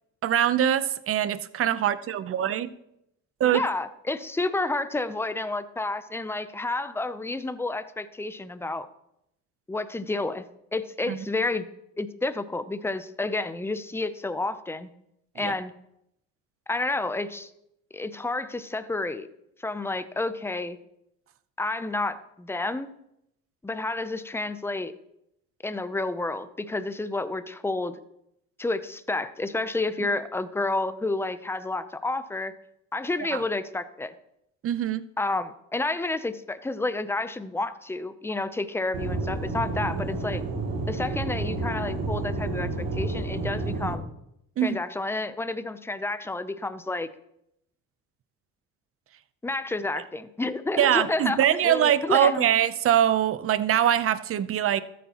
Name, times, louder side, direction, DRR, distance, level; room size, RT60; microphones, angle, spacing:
voice 1, 0.2-2.7 3.4-3.6 11.1-11.3 15.4-15.5 33.3-33.4 34.6-35.0 44.6-44.8 50.8-54.8, right 10 dB, 40° right, 14 dB, 0.7 m, -23 dB
voice 2, 3.5-8.9 9.7-10.4 10.7-11.7 12.0-14.9 15.4-15.7 16.7-17.5 17.9-19.3 19.6-20.8 21.6-22.9 23.6-24.9 25.6-28.0 28.6-32.5 32.9-34.1 35.2-40.4 40.9-44.1 44.6-47.1 49.4-52.5, left 2 dB, 5° left, 12 dB, 0.6 m, -30 dB
Aircraft / Engine, 38.9-43.9, right 3 dB, 80° right, 2.6 m, -30 dB
13.5 x 9.4 x 3.0 m, 0.80 s
cardioid pair, 100°, 33 cm